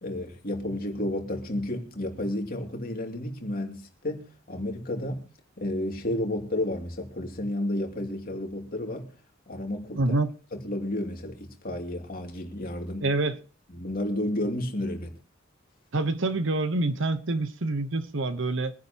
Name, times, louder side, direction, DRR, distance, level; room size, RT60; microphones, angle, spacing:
voice 1, 0.0-5.3 5.6-9.1 9.5-10.0 10.5-13.1 13.7-15.2, left 1 dB, 45° left, 2.7 m, -31 dB
voice 2, 9.9-10.3 13.0-13.4 15.9-18.7, right 2 dB, 65° right, 1.1 m, -26 dB
23.5 x 10.5 x 3.0 m
head